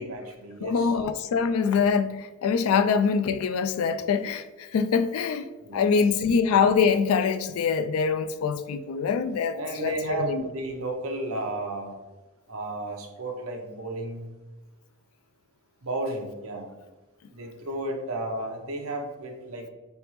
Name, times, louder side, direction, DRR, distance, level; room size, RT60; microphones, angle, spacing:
voice 1, 0.0-0.9 2.7-2.8 5.6-5.9 9.5-12.0 12.5-14.3 15.8-16.7 17.3-19.7, right 2 dB, 75° right, 2 dB, 0.7 m, -33 dB
voice 2, 0.6-5.5 5.7-10.4, left 6 dB, 75° left, 10 dB, 0.3 m, -24 dB
4.0 x 3.4 x 3.0 m, 1.1 s
head